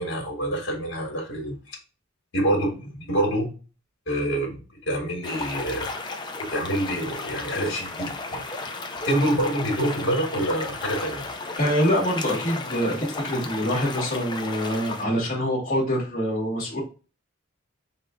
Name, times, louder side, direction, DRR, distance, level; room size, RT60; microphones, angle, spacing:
voice 1, 0.0-1.8 2.3-3.5 4.1-4.6 4.9-5.9 6.4-8.6 9.0-11.3, right 1 dB, 60° left, -1 dB, 1.7 m, -26 dB
sound 1, 5.2-15.0, left 3 dB, 20° left, 0.5 m, -34 dB
voice 2, 11.6-16.8, equal, 40° left, -5 dB, 1.5 m, -25 dB
5.5 x 2.3 x 3.6 m, 0.34 s
head